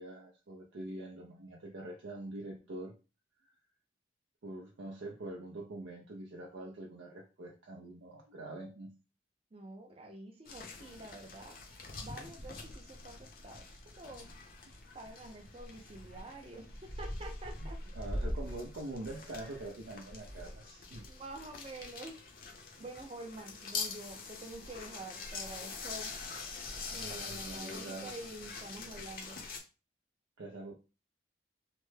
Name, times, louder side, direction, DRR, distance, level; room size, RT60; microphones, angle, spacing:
voice 1, 0.0-2.9 3.4-3.5 4.4-9.0 17.6-17.7 18.0-21.1 26.9-28.1 30.4-30.7, right 2 dB, 80° right, 0 dB, 0.5 m, -44 dB
voice 2, 9.5-11.6 12.0-14.4 14.9-17.8 21.1-22.2 22.8-26.1 26.9-29.4, right 2 dB, 30° right, 5 dB, 0.5 m, -47 dB
sound 1, 10.5-29.6, left 3 dB, 50° left, 0.6 m, -43 dB
3.2 x 2.1 x 3.2 m, 0.31 s
head